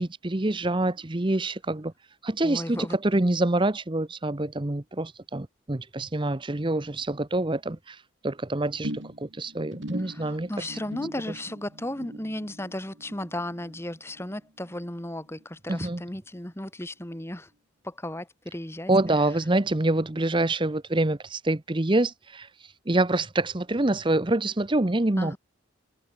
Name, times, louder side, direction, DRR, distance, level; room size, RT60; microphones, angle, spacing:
voice 1, 0.0-1.9 2.2-10.7 15.7-16.0 18.9-25.4, right 2 dB, 25° right, 0.8 m, -26 dB
voice 2, 2.4-3.0 10.0-17.5 17.8-18.9 25.2-25.4, left 1 dB, 10° left, 1.8 m, -35 dB
sound 1, 8.8-15.4 15.7-16.1 16.4-16.5, right 1 dB, 65° right, 4.5 m, -41 dB
head